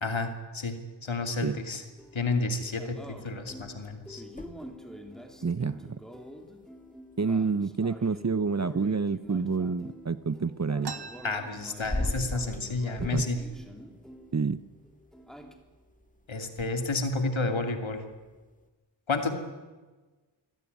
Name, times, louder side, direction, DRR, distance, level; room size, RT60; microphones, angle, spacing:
voice 1, 0.0-1.8 2.1-4.2 11.2-13.4 16.3-18.0 19.1-19.3, left 3 dB, 80° left, 6 dB, 2.8 m, -30 dB
sound 1, 1.5-14.6 14.8-15.6, equal, ahead, 3.3 m, -47 dB
sound 2, 2.0-18.7, left 1 dB, 15° left, 2.1 m, -43 dB
voice 2, 5.4-6.0 7.2-10.9 13.1-13.2 14.3-14.6, right 5 dB, 35° right, 15 dB, 0.8 m, -28 dB
sound 3, 10.8-12.4 12.8-12.9 13.1-13.7 14.3-14.5 15.2-15.4 15.8-16.3, right 5 dB, 55° right, 1.5 m, -43 dB
24.0 x 17.0 x 9.5 m, 1.3 s
cardioid pair, 45°, 46 cm